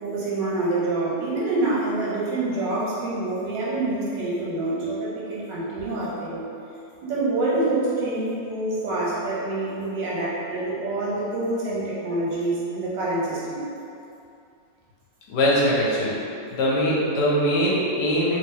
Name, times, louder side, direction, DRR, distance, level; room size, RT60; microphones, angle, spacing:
voice 1, 0.0-6.5 7.0-13.6, right 2 dB, 75° right, -7 dB, 1.5 m, -26 dB
voice 2, 15.3-16.2 16.5-18.4, equal, 70° left, -6 dB, 1.2 m, -22 dB
3.0 x 2.9 x 3.6 m, 2.6 s
omnidirectional pair, 1.9 m